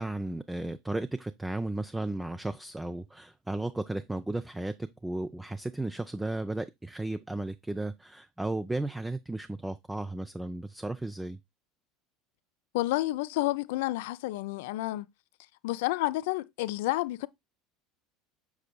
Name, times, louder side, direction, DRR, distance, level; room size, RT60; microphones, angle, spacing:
voice 1, 0.0-11.4, right 2 dB, 10° right, 0.4 m, -34 dB
voice 2, 12.7-15.1 15.6-17.3, left 18 dB, 60° left, 0.3 m, -30 dB
7.1 x 6.5 x 2.2 m
figure-of-eight pair, 70°, 0 cm